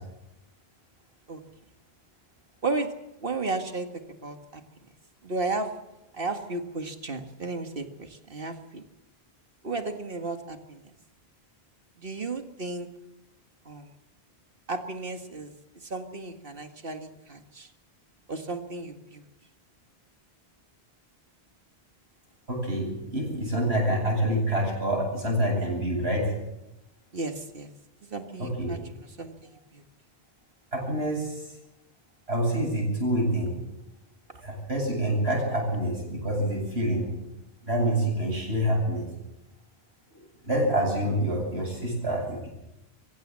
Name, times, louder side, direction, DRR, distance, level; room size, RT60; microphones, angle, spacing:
voice 1, 2.6-2.9 3.2-3.9 4.2-4.6 5.2-5.7 6.1-8.8 9.6-10.8 12.0-12.9 13.7-13.9 14.7-15.5 15.9-17.7 18.3-19.2 27.1-27.7 28.1-29.3 29.7-29.8, right 3 dB, 60° right, 6 dB, 2.0 m, -33 dB
voice 2, 22.5-26.3 28.4-28.7 30.7-31.4 32.3-33.5 34.4-37.1 37.6-39.1 40.4-42.5, right 1 dB, 80° right, -1 dB, 8.4 m, -27 dB
24.0 x 16.0 x 7.6 m, 0.94 s
omnidirectional pair, 1.1 m